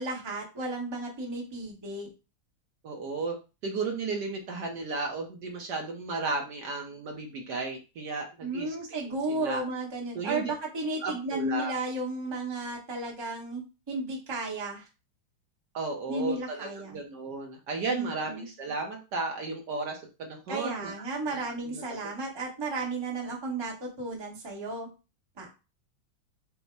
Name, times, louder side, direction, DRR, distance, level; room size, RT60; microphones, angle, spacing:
voice 1, 0.0-2.1 8.4-13.6 13.9-14.9 16.1-17.0 17.9-18.5 20.5-24.9 25.4-25.5, right 2 dB, 20° right, -1 dB, 0.8 m, -33 dB
voice 2, 2.8-3.4 3.6-9.6 10.1-10.5 11.0-11.7 15.7-20.9 21.2-21.8, right 3 dB, 65° right, 2 dB, 1.2 m, -34 dB
5.4 x 2.1 x 4.5 m, 0.30 s
omnidirectional pair, 2.3 m